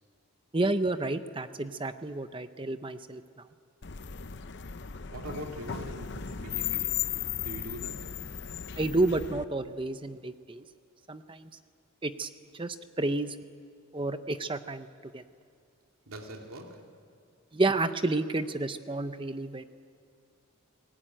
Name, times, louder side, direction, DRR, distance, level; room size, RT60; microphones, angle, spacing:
voice 1, 0.5-3.2 8.8-10.6 11.1-11.5 12.0-12.3 12.6-13.3 13.9-14.9 15.1-15.2 17.5-19.6, right 2 dB, 25° right, 10 dB, 0.7 m, -30 dB
sound 1, 3.8-9.4, left 9 dB, 55° left, 0.8 m, -36 dB
voice 2, 5.1-8.4 16.1-17.0, equal, 85° right, 2 dB, 2.6 m, -43 dB
29.0 x 18.5 x 8.9 m, 2.3 s
head